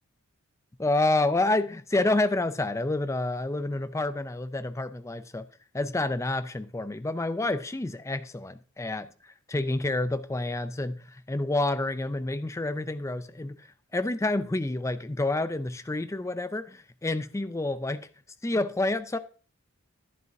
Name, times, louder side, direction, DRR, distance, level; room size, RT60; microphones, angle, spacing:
voice 1, 0.8-5.5 5.7-9.1 9.5-13.6 13.9-18.1 18.4-19.2, left 2 dB, 15° left, 0.4 m, -28 dB
11.0 x 10.5 x 2.7 m
head